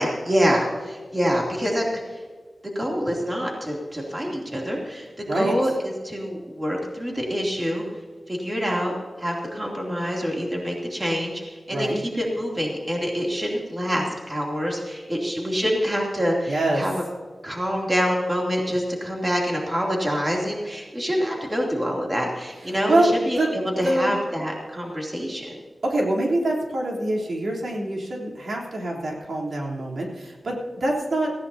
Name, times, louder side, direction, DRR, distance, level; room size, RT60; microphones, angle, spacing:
voice 1, 0.0-1.9 2.7-7.8 8.3-8.9 9.2-16.9 17.4-25.6, equal, 15° right, -2 dB, 2.9 m, -26 dB
voice 2, 11.7-12.0 16.5-16.8 22.6-23.5 23.8-24.1 25.8-31.3, right 1 dB, 70° right, -3 dB, 3.5 m, -25 dB
18.5 x 16.0 x 2.8 m, 1.5 s
wide cardioid pair, 130°, 0 cm